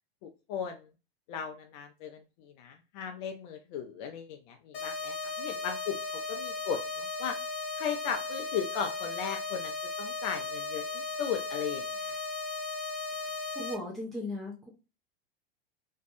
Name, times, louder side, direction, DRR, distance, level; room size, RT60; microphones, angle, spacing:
voice 1, 0.2-0.9 1.3-6.0 6.3-7.4 7.8-12.2, left 7 dB, 50° left, 4 dB, 0.5 m, -37 dB
sound 1, 4.7-13.7, left 3 dB, 75° left, 0.9 m, -36 dB
voice 2, 13.6-14.7, left 1 dB, ahead, -3 dB, 0.6 m, -37 dB
2.6 x 2.2 x 2.5 m, 0.31 s
hypercardioid pair, 95°, 30 cm